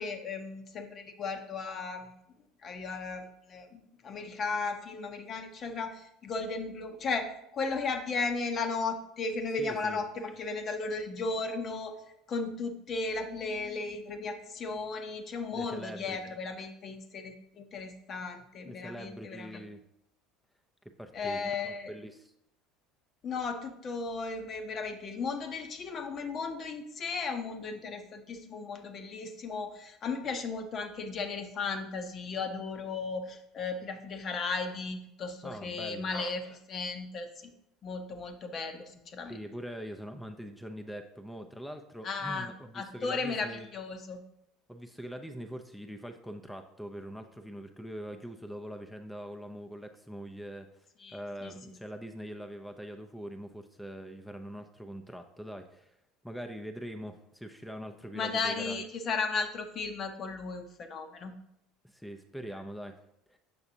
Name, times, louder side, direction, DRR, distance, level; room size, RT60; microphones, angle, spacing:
voice 1, 0.0-2.2 2.6-12.0 12.3-19.6 21.1-21.9 23.2-37.5 37.8-39.4 42.0-44.2 51.0-51.6 58.1-61.3, left 4 dB, 45° left, 7 dB, 0.8 m, -35 dB
voice 2, 9.6-10.0 15.5-16.2 18.6-19.8 20.9-22.3 35.4-36.0 39.3-43.7 44.7-56.0 56.2-58.8 61.8-63.0 63.3-63.4, equal, ahead, 5 dB, 0.5 m, -43 dB
6.9 x 5.8 x 2.7 m, 0.79 s
hypercardioid pair, 70°, 0 cm